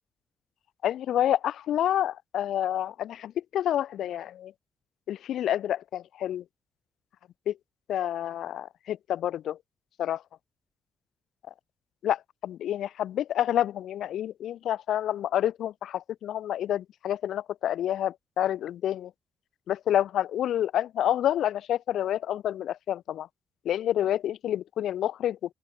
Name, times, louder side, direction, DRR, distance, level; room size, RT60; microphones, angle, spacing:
voice 1, 0.8-4.5 5.1-6.4 7.5-7.6 7.9-9.6 10.0-10.2 12.0-19.1 19.7-23.3 23.6-25.4, left 11 dB, 80° left, 4.2 m, -28 dB
open air
cardioid pair, 155°, 0 cm